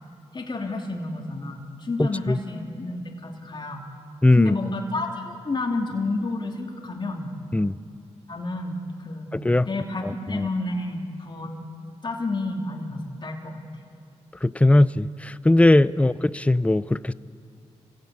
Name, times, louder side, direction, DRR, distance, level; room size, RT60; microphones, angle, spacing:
voice 1, 0.3-3.8 4.3-7.3 8.3-9.3 9.7-11.5 12.0-13.6, left 2 dB, 40° left, 0 dB, 2.9 m, -30 dB
voice 2, 2.0-2.4 4.2-4.6 7.5-7.8 9.3-9.7 10.0-10.5 14.4-17.1, left 2 dB, 10° left, 17 dB, 0.5 m, -19 dB
28.0 x 16.0 x 8.7 m, 2.4 s
cardioid pair, 70°, 12 cm